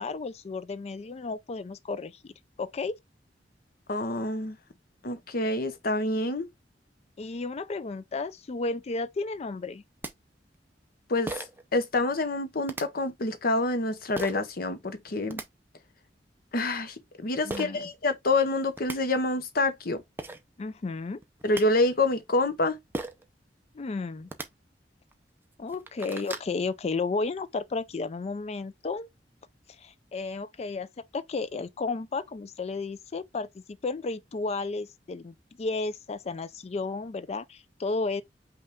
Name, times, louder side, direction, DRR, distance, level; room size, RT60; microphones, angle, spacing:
voice 1, 0.0-2.3 2.6-3.0 7.2-9.8 17.4-17.8 20.6-21.2 23.7-24.3 25.6-29.1 29.8-38.2, left 3 dB, 40° left, 0.4 m, -33 dB
voice 2, 3.9-4.6 5.0-6.5 11.1-11.3 11.7-15.4 16.5-20.0 21.4-22.8, left 2 dB, 55° left, 0.8 m, -27 dB
sound 1, 9.7-9.8 10.0-10.1 11.3-11.6 12.7-12.8 14.2-14.4 15.1-15.5 17.5-17.7 18.5-18.6 18.8-19.0 19.9-20.0 20.2-20.4 21.2-21.6 22.9-23.3 24.2-24.5 25.1-25.2 25.6-26.5, right 2 dB, 10° right, 0.6 m, -36 dB
5.5 x 2.4 x 3.5 m
head